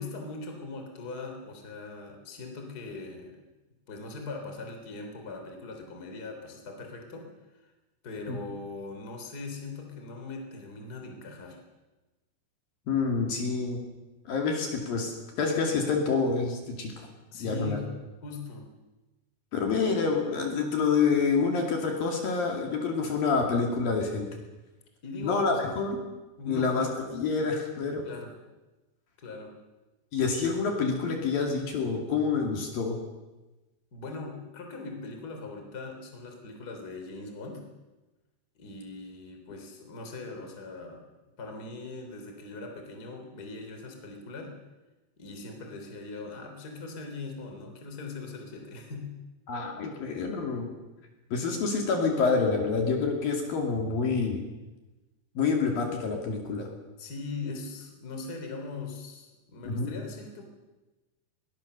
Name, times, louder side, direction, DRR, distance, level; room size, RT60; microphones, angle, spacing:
voice 1, 0.0-3.4 3.9-7.2 7.5-7.6 8.0-11.6 17.3-17.9 18.2-18.7 25.0-25.6 26.4-26.7 28.0-28.3 29.2-29.5 33.9-37.6 38.5-41.0 41.4-44.5 45.2-49.2 57.0-60.4, left 3 dB, 25° left, 3 dB, 3.4 m, -40 dB
voice 2, 12.9-13.8 14.3-16.9 17.4-17.8 19.5-24.3 25.2-26.0 26.5-28.0 30.1-33.0 49.5-50.7 51.3-54.4 55.4-56.7 59.7-59.9, left 4 dB, 60° left, 2 dB, 3.9 m, -27 dB
21.5 x 20.0 x 6.7 m, 1.1 s
omnidirectional pair, 5.0 m